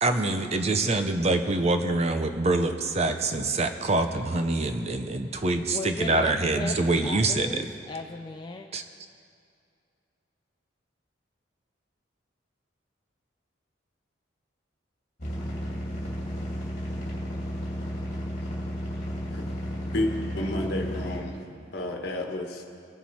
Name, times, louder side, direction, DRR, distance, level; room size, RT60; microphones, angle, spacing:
voice 1, 0.0-7.6 8.7-8.8, right 2 dB, 35° right, 7 dB, 0.6 m, -25 dB
voice 2, 5.7-6.8 7.0-8.7, left 3 dB, 25° left, 3 dB, 0.4 m, -36 dB
sound 1, 15.2-21.2, equal, 40° left, 2.5 m, -33 dB
voice 3, 20.3-21.4 21.7-22.6, left 1 dB, 55° left, 2 dB, 1.5 m, -30 dB
21.0 x 7.4 x 4.2 m, 2.4 s
head